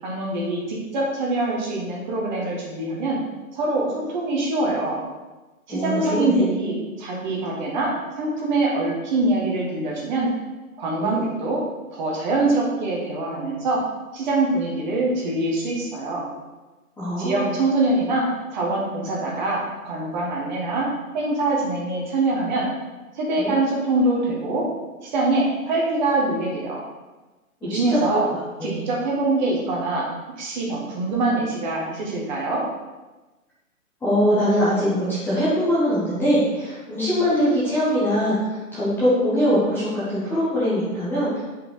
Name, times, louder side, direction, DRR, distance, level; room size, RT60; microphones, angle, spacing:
voice 1, 0.0-3.2 3.5-5.0 5.7-10.3 10.8-11.6 11.9-13.8 14.1-16.2 17.2-18.2 18.5-20.9 21.1-22.7 23.1-24.6 25.0-26.8 27.6-28.2 28.6-30.1 30.4-32.6, right 2 dB, 30° right, -3 dB, 1.6 m, -24 dB
voice 2, 5.7-6.4 11.0-11.2 17.0-17.5 23.4-23.5 27.6-28.0 28.6-28.8 34.0-41.4, equal, 5° left, -11 dB, 1.2 m, -22 dB
7.6 x 5.3 x 4.0 m, 1.2 s
hypercardioid pair, 150°, 42 cm